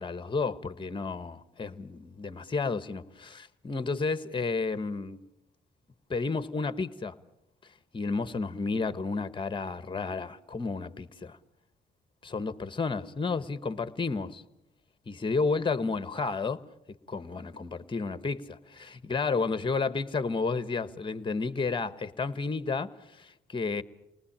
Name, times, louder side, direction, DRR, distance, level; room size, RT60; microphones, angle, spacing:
voice 1, 0.0-5.2 6.1-7.2 7.9-11.4 12.2-14.4 15.1-16.6 17.1-23.8, left 4 dB, 25° left, 1.3 m, -31 dB
29.0 x 19.5 x 8.7 m
cardioid pair, 90°, 20 cm